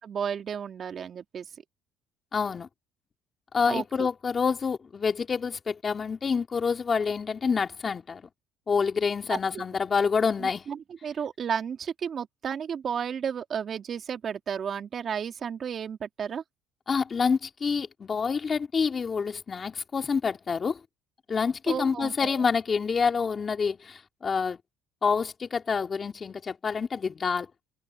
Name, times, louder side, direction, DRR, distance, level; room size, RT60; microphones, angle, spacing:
voice 1, 0.0-1.6 3.7-4.1 9.3-9.7 10.4-16.4 21.7-22.5, right 7 dB, 45° right, 2.5 m, -33 dB
voice 2, 2.3-2.7 3.5-8.2 8.7-10.6 16.9-20.8 21.3-24.6 25.0-27.5, left 5 dB, 35° left, 2.3 m, -27 dB
supercardioid pair, 90°, 0 cm